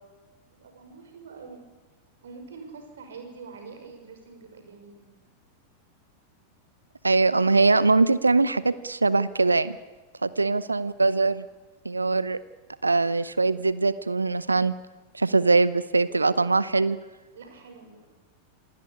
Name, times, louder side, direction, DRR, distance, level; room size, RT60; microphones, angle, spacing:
voice 1, 0.5-1.7 2.2-5.2 10.4-10.7 17.3-18.2, right 4 dB, 65° right, 6 dB, 6.1 m, -45 dB
voice 2, 7.0-9.8 10.2-11.4 11.8-12.4 12.8-14.7 15.1-17.0, right 3 dB, 80° right, 17 dB, 0.8 m, -22 dB
27.0 x 17.5 x 10.0 m, 1.2 s
figure-of-eight pair, 90°, 0 cm